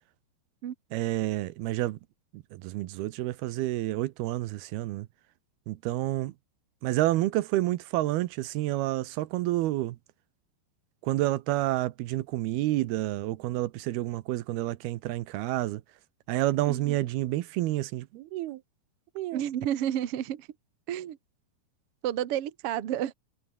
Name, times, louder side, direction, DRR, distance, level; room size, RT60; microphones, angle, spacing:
voice 1, 0.9-2.0 2.3-5.1 5.7-6.3 6.8-10.0 11.0-15.8 16.3-18.6 19.2-19.4, right 16 dB, 85° right, 2.8 m, -29 dB
voice 2, 19.3-20.5 20.9-21.2 22.0-23.1, right 11 dB, 55° right, 1.6 m, -31 dB
omnidirectional pair, 4.5 m